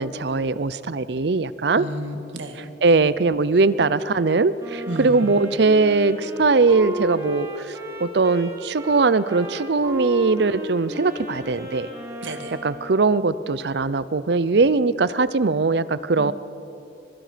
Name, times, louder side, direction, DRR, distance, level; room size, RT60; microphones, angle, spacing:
voice 1, 0.0-1.9 2.8-7.5 8.0-11.9 12.3-12.4 12.6-16.3, right 3 dB, 60° right, 16 dB, 0.6 m, -20 dB
voice 2, 1.8-2.6 4.9-5.2 12.2-12.5 16.2-16.3, right 1 dB, 85° right, 5 dB, 2.0 m, -32 dB
Wind instrument woodwind instrument, 4.6-13.1, right 1 dB, 20° right, 3.0 m, -35 dB
24.5 x 23.0 x 5.1 m, 3.0 s
head